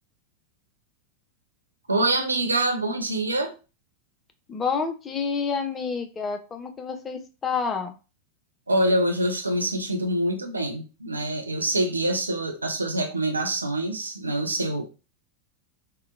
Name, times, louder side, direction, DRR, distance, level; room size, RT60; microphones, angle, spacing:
voice 1, 1.9-3.5 8.7-14.8, right 1 dB, 80° right, 4 dB, 0.5 m, -25 dB
voice 2, 4.5-7.9, left 5 dB, 20° left, 5 dB, 0.4 m, -29 dB
2.7 x 2.1 x 2.4 m, 0.32 s
figure-of-eight pair, 90°, 0 cm